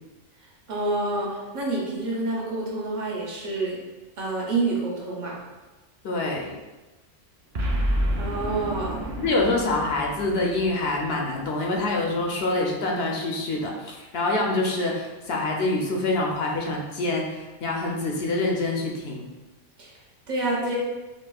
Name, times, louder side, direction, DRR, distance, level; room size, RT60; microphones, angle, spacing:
voice 1, 0.7-3.8 4.2-5.4 8.2-9.0 19.8-19.9 20.3-20.8, right 2 dB, 45° right, -4 dB, 0.8 m, -28 dB
voice 2, 6.0-6.6 9.2-19.2, left 2 dB, 65° left, -1 dB, 0.7 m, -26 dB
Boom, 7.5-11.9, equal, 80° right, 0.3 m, -30 dB
5.2 x 2.0 x 2.3 m, 1.1 s
omnidirectional pair, 1.3 m